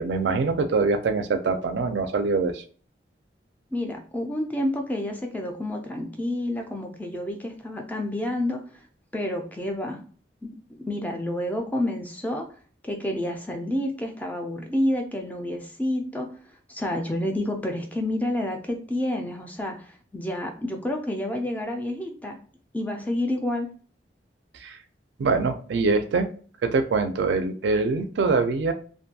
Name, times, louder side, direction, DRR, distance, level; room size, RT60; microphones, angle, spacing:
voice 1, 0.0-2.6 24.6-24.8 25.2-26.3 26.6-28.7, right 4 dB, 75° right, 8 dB, 0.4 m, -24 dB
voice 2, 3.7-8.6 9.1-10.0 10.4-12.5 12.8-16.3 16.7-22.3 22.7-23.7, left 1 dB, 10° left, 3 dB, 0.3 m, -29 dB
2.5 x 2.2 x 2.7 m, 0.42 s
head